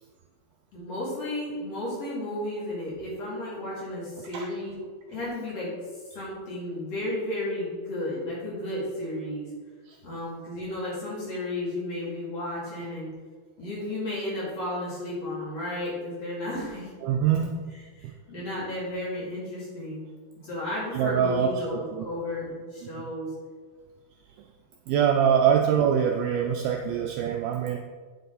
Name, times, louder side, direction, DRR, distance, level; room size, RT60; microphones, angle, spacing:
voice 1, 0.7-4.7 5.1-5.7 6.1-9.5 10.0-13.1 13.6-16.9 17.9-20.1 20.4-23.3, left 1 dB, 40° left, -7 dB, 3.2 m, -33 dB
voice 2, 17.0-17.5 18.0-18.1 20.9-22.1 23.0-23.1 24.4-24.5 24.9-27.8, right 8 dB, 80° right, 2 dB, 2.2 m, -24 dB
9.0 x 7.0 x 4.0 m, 1.5 s
omnidirectional pair, 4.9 m